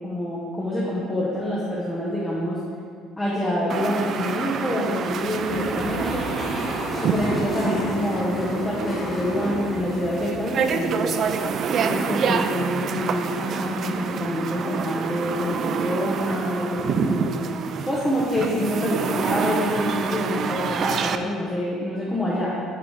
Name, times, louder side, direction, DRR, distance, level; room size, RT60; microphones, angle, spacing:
voice 1, 0.0-2.6 3.2-6.3 7.0-11.2 11.8-17.3 17.9-22.5, left 1 dB, 10° left, -7 dB, 0.9 m, -26 dB
sound 1, 3.7-21.2, right 6 dB, 40° right, 0.3 m, -27 dB
sound 2, 5.2-11.6, equal, 10° right, 1.4 m, -32 dB
9.7 x 3.9 x 4.8 m, 2.1 s
cardioid pair, 160°, 0 cm